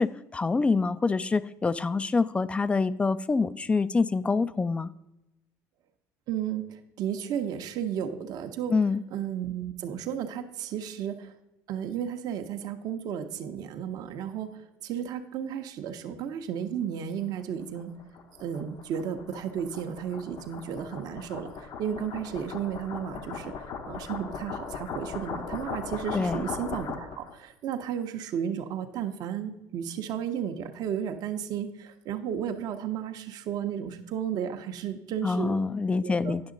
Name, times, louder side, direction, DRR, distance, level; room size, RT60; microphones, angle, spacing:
voice 1, 0.0-4.9 8.7-9.0 26.1-26.5 35.2-36.4, left 4 dB, 15° left, 16 dB, 0.3 m, -26 dB
voice 2, 6.3-8.7 9.1-11.3 11.7-17.9 18.4-35.6 36.0-36.4, right 9 dB, 60° right, 6 dB, 0.8 m, -33 dB
sound 1, 17.4-27.3, left 5 dB, 55° left, 0.8 m, -38 dB
9.6 x 6.2 x 3.8 m, 0.91 s
cardioid pair, 110°, 8 cm